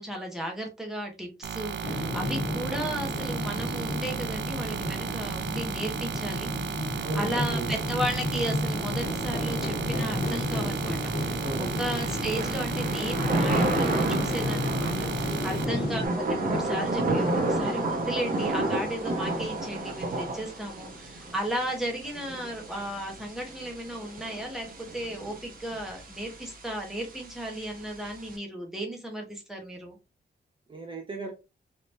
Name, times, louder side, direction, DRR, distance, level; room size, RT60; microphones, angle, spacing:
voice 1, 0.0-16.0 16.3-30.0, right 1 dB, ahead, 0 dB, 1.0 m, -35 dB
sound 1, 1.4-15.6, right 8 dB, 80° right, 0.4 m, -35 dB
sound 2, 1.8-16.1, left 1 dB, 50° left, 1.2 m, -31 dB
voice 2, 7.0-7.8 11.4-11.8 30.7-31.3, right 3 dB, 30° right, 2 dB, 0.5 m, -36 dB
Thunder / Rain, 10.1-28.4, right 2 dB, 50° right, 0.9 m, -32 dB
3.4 x 2.8 x 2.6 m, 0.27 s
wide cardioid pair, 160°, 18 cm